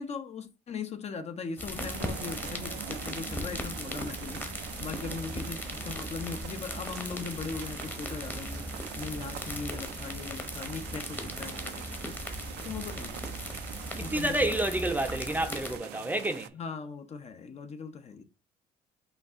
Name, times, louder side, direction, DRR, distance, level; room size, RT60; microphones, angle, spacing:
voice 1, 0.0-12.2 12.6-13.2 14.0-14.6 16.5-18.2, left 5 dB, 40° left, 0.6 m, -39 dB
Pouring beer, 1.6-15.8, left 1 dB, 10° left, 0.9 m, -38 dB
sound 1, 1.8-16.5, right 14 dB, 80° right, 0.4 m, -44 dB
voice 2, 14.0-16.5, right 1 dB, 10° right, 0.5 m, -29 dB
5.3 x 2.4 x 3.5 m
cardioid pair, 110°, 17 cm